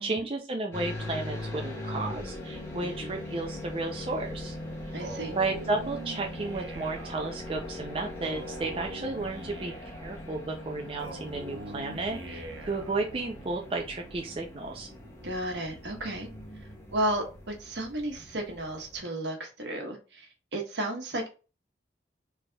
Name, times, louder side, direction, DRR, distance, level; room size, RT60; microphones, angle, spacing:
voice 1, 0.0-4.5 5.4-14.9, right 3 dB, 30° right, 1 dB, 0.5 m, -33 dB
sound 1, 0.7-19.0, left 1 dB, 15° left, 1.2 m, -41 dB
voice 2, 2.8-3.1 4.9-5.3 15.2-16.3 16.9-21.3, right 1 dB, 70° right, 2 dB, 1.2 m, -33 dB
Male speech man speaking, 5.0-7.2 8.2-10.1 11.0-13.0, right 2 dB, 85° right, 0.8 m, -43 dB
4.1 x 3.4 x 2.3 m, 0.32 s
head